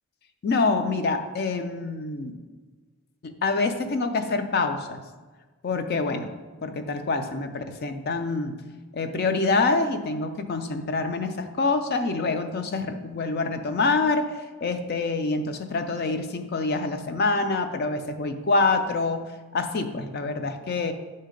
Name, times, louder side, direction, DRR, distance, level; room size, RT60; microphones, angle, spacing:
voice 1, 0.4-2.3 3.2-5.0 5.6-6.3 6.6-8.5 8.9-14.2 14.6-19.2 19.5-20.9, left 3 dB, 45° left, 7 dB, 0.4 m, -26 dB
7.4 x 2.8 x 5.0 m, 1.3 s
head